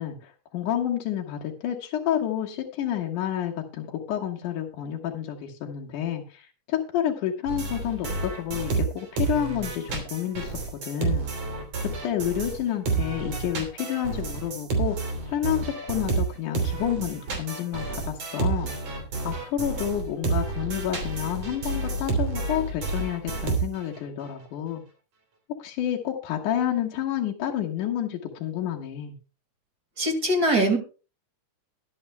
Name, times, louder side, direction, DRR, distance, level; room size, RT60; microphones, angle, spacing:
voice 1, 0.0-11.3 11.8-18.7 19.2-24.8 25.6-29.1, left 10 dB, 80° left, 0 dB, 2.8 m, -29 dB
sound 1, 7.5-12.6 12.9-24.0, right 4 dB, 55° right, 4.3 m, -29 dB
voice 2, 30.0-30.8, right 1 dB, 35° right, 5 dB, 2.4 m, -22 dB
22.0 x 8.7 x 2.2 m, 0.33 s
omnidirectional pair, 3.6 m